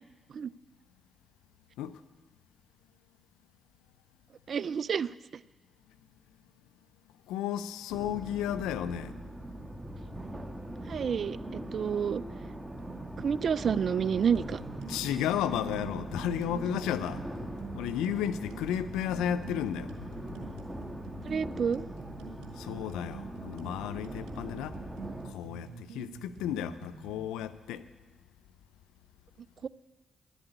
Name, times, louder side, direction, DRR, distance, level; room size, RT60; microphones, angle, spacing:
voice 1, 4.5-5.1 10.9-12.2 13.2-14.6 21.2-21.9 29.6-29.7, right 7 dB, 60° right, 0.3 m, -29 dB
voice 2, 7.3-9.1 14.9-20.6 22.5-24.8 25.2-27.8, left 10 dB, 85° left, 0.5 m, -33 dB
sound 1, 7.9-25.3, right 1 dB, 15° right, 1.6 m, -41 dB
sound 2, 14.3-27.2, right 5 dB, 85° right, 1.3 m, -47 dB
11.0 x 8.1 x 8.8 m
supercardioid pair, 45°, 0 cm